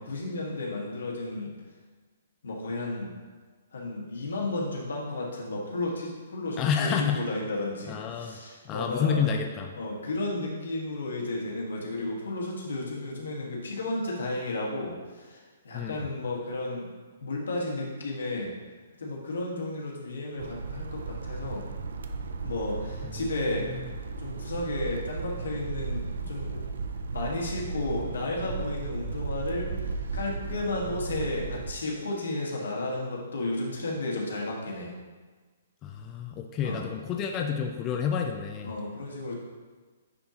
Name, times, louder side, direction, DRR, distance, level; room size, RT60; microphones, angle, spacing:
voice 1, 0.0-1.5 2.4-3.1 3.7-9.3 9.8-16.9 17.2-18.5 19.0-21.7 22.4-23.7 24.2-26.6 27.1-29.7 30.1-34.9 36.6-36.8 38.6-39.4, left 2 dB, 85° left, -2 dB, 1.6 m, -33 dB
voice 2, 6.6-7.2 7.9-8.4 8.7-9.8 15.7-16.1 23.0-23.2 23.7-23.8 35.8-38.7, left 7 dB, 25° left, 3 dB, 0.4 m, -29 dB
sound 1, 20.4-31.7, right 4 dB, 75° right, 0.5 m, -35 dB
9.4 x 3.8 x 2.9 m, 1.4 s
hypercardioid pair, 155°, 0 cm